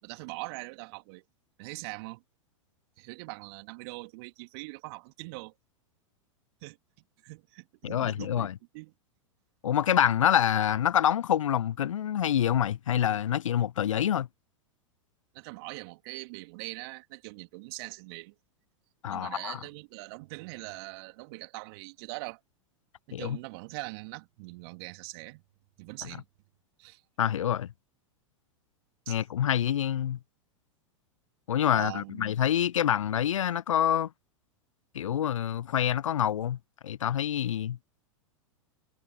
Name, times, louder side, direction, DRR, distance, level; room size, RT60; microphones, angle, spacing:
voice 1, 0.0-1.2 1.6-2.2 3.0-5.5 6.6-6.8 7.2-8.9 15.3-18.3 19.1-22.4 23.1-25.4 25.8-26.2 26.8-27.0 29.1-29.2 31.7-32.3, right 27 dB, 50° right, 2.9 m, -42 dB
voice 2, 7.8-8.6 9.6-14.3 19.0-19.6 23.1-23.4 26.0-26.1 27.2-27.7 29.1-30.2 31.5-34.1 34.9-36.6 36.8-37.8, left 10 dB, 75° left, 0.4 m, -26 dB
figure-of-eight pair, 95°, 17 cm